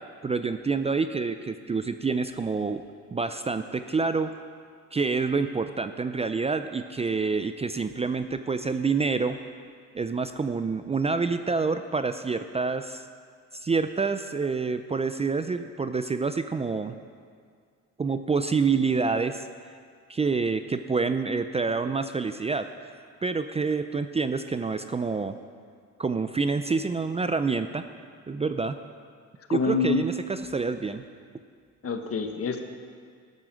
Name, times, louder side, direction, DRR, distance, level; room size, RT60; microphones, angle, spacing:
voice 1, 0.2-2.8 3.1-4.3 4.9-9.4 9.9-13.1 13.5-16.9 18.0-19.5 20.1-22.7 23.2-25.4 26.0-27.9 28.3-28.8 29.5-31.0, right 4 dB, 20° right, 10 dB, 0.4 m, -27 dB
voice 2, 29.5-30.0 31.8-32.6, left 4 dB, 50° left, 6 dB, 1.3 m, -26 dB
12.0 x 9.4 x 6.3 m, 2.1 s
cardioid pair, 90°, 30 cm